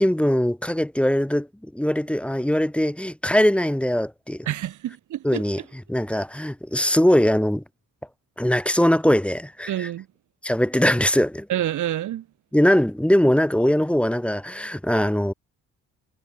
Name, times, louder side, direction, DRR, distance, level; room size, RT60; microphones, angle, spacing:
voice 1, 0.0-4.5 5.2-7.6 8.4-9.9 10.4-11.5 12.5-15.3, equal, 5° left, 4.6 m, -21 dB
voice 2, 4.5-5.4 9.7-10.1 11.5-12.2, right 12 dB, 75° right, 3.6 m, -27 dB
cardioid pair, 90°, 30 cm